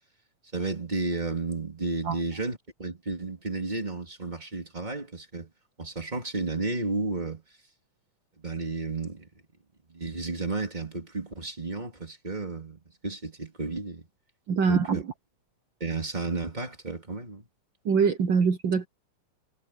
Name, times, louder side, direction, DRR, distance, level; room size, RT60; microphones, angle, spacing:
voice 1, 0.5-5.5 5.8-7.4 8.4-9.3 9.9-14.1 14.7-15.0 15.8-17.5, right 3 dB, 15° right, 2.9 m, -32 dB
voice 2, 14.5-15.0 17.8-18.9, right 5 dB, 75° right, 1.0 m, -23 dB
omnidirectional pair, 3.6 m